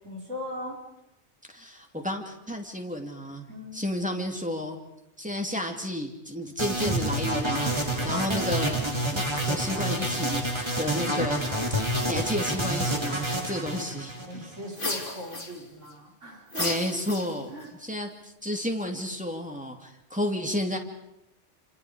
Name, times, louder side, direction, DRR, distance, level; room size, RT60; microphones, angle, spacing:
voice 1, 0.0-0.8 3.5-3.9 8.0-8.2 14.3-16.7 17.5-17.7, left 1 dB, 80° right, -1 dB, 5.2 m, -39 dB
voice 2, 1.5-3.5 3.7-4.8 5.2-7.7 8.0-8.8 9.1-14.1 16.6-17.5 17.8-20.8, left 1 dB, 5° right, 2 dB, 2.5 m, -32 dB
sound 1, 6.6-14.7, right 1 dB, 20° right, 2.9 m, -28 dB
sound 2, 14.7-15.9 16.5-17.7, left 2 dB, 45° left, 3.2 m, -33 dB
29.0 x 27.5 x 5.1 m, 0.87 s
omnidirectional pair, 1.2 m